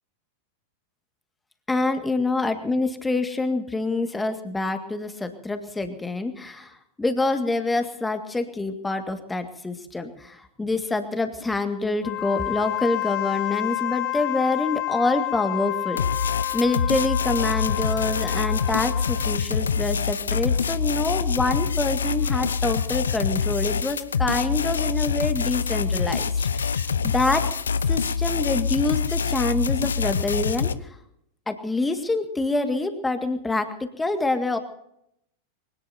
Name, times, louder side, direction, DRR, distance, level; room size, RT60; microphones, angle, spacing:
voice 1, 1.7-27.5 27.9-30.7 31.5-34.6, left 2 dB, 10° left, 7 dB, 2.0 m, -26 dB
Wind instrument woodwind instrument, 12.0-19.5, left 17 dB, 35° left, 4.6 m, -30 dB
sound 1, 16.0-30.7, left 6 dB, 70° left, 0.7 m, -25 dB
24.0 x 18.0 x 2.8 m, 0.75 s
figure-of-eight pair, 90°, 0 cm